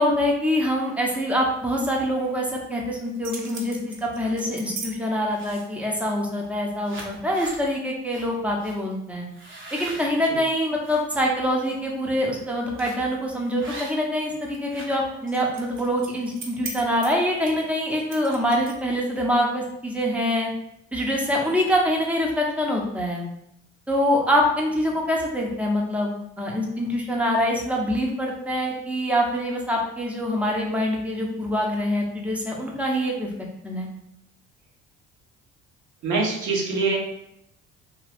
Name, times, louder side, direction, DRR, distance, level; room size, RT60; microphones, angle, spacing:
voice 1, 0.0-9.3 9.7-20.5 20.9-23.2 23.9-33.9, equal, 5° right, -1 dB, 0.8 m, -25 dB
sound 1, 3.0-4.9 5.3-5.8 6.4-6.5 6.8-7.6 8.1-8.3 8.6-8.8 9.3-11.0 11.5-11.7 12.8-13.1 13.6-14.2 14.5-19.0, right 3 dB, 40° right, 0.9 m, -39 dB
voice 2, 36.0-37.0, right 3 dB, 65° right, -1 dB, 1.0 m, -23 dB
2.6 x 2.2 x 3.4 m, 0.77 s
hypercardioid pair, 60°, 32 cm